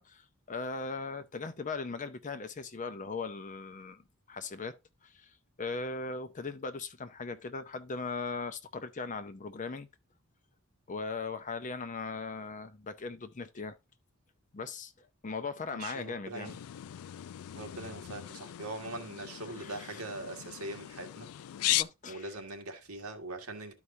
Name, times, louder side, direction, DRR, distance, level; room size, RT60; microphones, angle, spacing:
voice 1, 0.0-4.0 4.3-4.8 5.0-9.9 10.9-13.8 14.5-16.5 19.5-20.0 21.7-22.3, left 4 dB, 35° left, 0.6 m, -39 dB
voice 2, 15.7-16.6 17.5-21.3 22.1-23.7, right 2 dB, 85° right, 1.7 m, -42 dB
sound 1, 16.4-21.8, left 15 dB, 80° left, 0.3 m, -37 dB
12.5 x 4.8 x 2.7 m
head